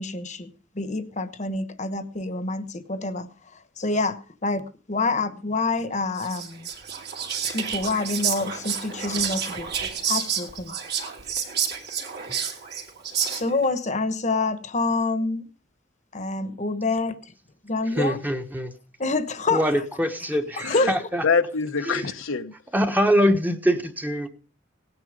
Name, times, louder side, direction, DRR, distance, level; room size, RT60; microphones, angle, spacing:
voice 1, 0.0-3.3 3.8-6.7 7.4-9.7 10.1-10.7 13.3-15.5 16.1-17.3 17.6-18.2 19.0-19.6 20.7-20.9, left 3 dB, 35° left, 1.1 m, -27 dB
Whispering, 6.2-13.6, right 7 dB, 55° right, 3.0 m, -29 dB
voice 2, 17.9-18.7 19.5-21.2 21.8-22.1 22.7-24.3, equal, 10° right, 1.2 m, -23 dB
voice 3, 21.2-22.5, left 5 dB, 80° left, 1.0 m, -25 dB
17.5 x 9.7 x 5.1 m
head